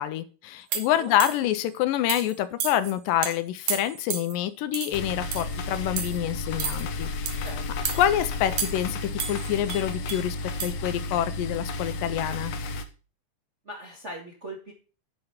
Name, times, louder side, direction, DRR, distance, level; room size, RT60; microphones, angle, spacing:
voice 1, 0.0-7.1 7.3-7.5 8.0-10.4 10.6-12.5, left 12 dB, 85° left, 13 dB, 2.3 m, -27 dB
sound 1, 0.7-1.6 2.1-2.3 2.6-2.9 3.2-3.3 3.7-4.3 4.7-5.0 5.3-5.6 6.0-6.2 6.6-6.8 7.3-7.5 7.9-8.1 8.6-8.9 9.2-10.2 10.6-10.7, right 7 dB, 60° right, 2.2 m, -32 dB
sound 2, 4.9-12.8, left 3 dB, 70° left, 1.6 m, -32 dB
voice 2, 13.6-14.7, equal, 35° right, -1 dB, 1.1 m, -39 dB
9.8 x 5.0 x 5.7 m, 0.35 s
omnidirectional pair, 3.9 m